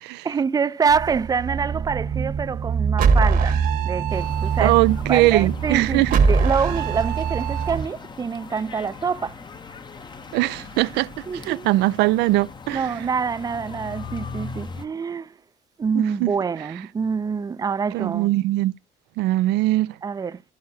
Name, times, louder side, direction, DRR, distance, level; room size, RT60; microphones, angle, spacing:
voice 1, 0.2-4.8 5.1-9.4 11.3-11.7 12.7-15.4 15.8-18.3 18.6-18.7 20.0-20.4, right 6 dB, 20° right, 0.4 m, -26 dB
sound 1, 0.9-7.8, right 5 dB, 55° right, 1.2 m, -23 dB
sound 2, 4.1-14.9, left 4 dB, 25° left, 0.7 m, -39 dB
voice 2, 4.6-6.1 10.3-11.1 11.5-12.9 16.0-16.3 17.9-18.7 19.2-19.9, right 18 dB, 90° right, 0.4 m, -21 dB
12.5 x 4.7 x 2.7 m
cardioid pair, 110°, 17 cm